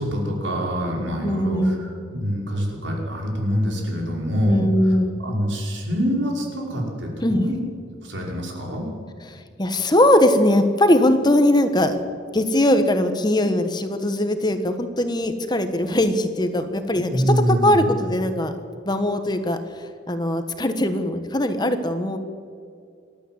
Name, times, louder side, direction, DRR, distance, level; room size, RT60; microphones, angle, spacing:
voice 1, 0.0-7.6 8.0-8.8 17.1-17.8, equal, 65° right, -1 dB, 5.5 m, -25 dB
voice 2, 1.2-1.8 4.5-5.1 7.2-7.5 9.3-12.0 12.3-17.3 17.6-18.5 18.8-22.2, left 1 dB, 20° left, 8 dB, 1.4 m, -20 dB
27.5 x 12.5 x 8.1 m, 2.3 s
head